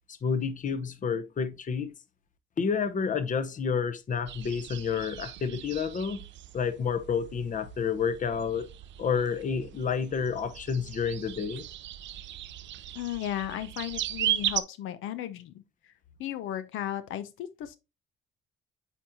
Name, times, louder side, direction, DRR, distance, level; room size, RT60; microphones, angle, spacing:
voice 1, 0.1-1.9 2.6-6.2 6.5-8.7 9.0-11.7, left 6 dB, 40° left, 0.8 m, -29 dB
sound 1, 4.3-14.6, right 12 dB, 65° right, 0.5 m, -37 dB
voice 2, 12.9-15.9 16.2-17.8, left 11 dB, 85° left, 0.5 m, -35 dB
8.2 x 4.4 x 2.6 m
cardioid pair, 90°, 20 cm